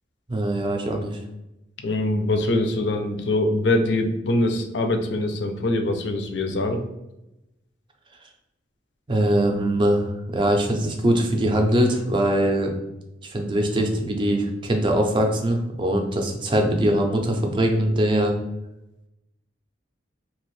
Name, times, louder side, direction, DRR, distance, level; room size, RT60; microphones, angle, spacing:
voice 1, 0.3-1.2 9.1-12.7 13.2-18.3, right 1 dB, 25° right, 3 dB, 0.4 m, -22 dB
voice 2, 1.8-6.8, left 2 dB, 65° left, 5 dB, 0.5 m, -23 dB
2.9 x 2.5 x 3.1 m, 0.92 s
head